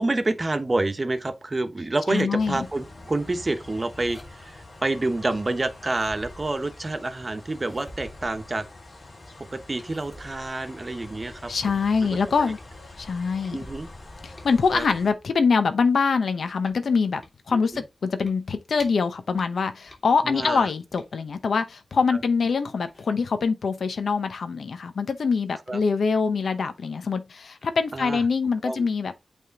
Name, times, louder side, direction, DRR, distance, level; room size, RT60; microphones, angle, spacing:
voice 1, 0.0-8.7 9.5-11.5 12.4-12.5 13.5-13.9 14.7-14.8 17.5-17.8 20.2-20.7 22.1-22.2 25.7-25.8 27.9-28.2 28.6-28.9, right 2 dB, 30° right, 1.0 m, -28 dB
voice 2, 2.1-2.7 11.5-12.6 13.0-13.6 14.2-17.2 17.5-29.1, left 5 dB, 80° left, 0.8 m, -24 dB
sound 1, 2.4-15.1, left 2 dB, 50° left, 3.9 m, -45 dB
sound 2, 4.0-4.7 5.8-7.0 7.5-8.9 9.8-11.7 12.2-12.3 12.6-15.5 15.9-19.1 19.4-21.4 21.9-22.6 22.9-23.1, left 1 dB, 25° left, 2.5 m, -49 dB
8.4 x 3.6 x 3.6 m
wide cardioid pair, 110°, 0 cm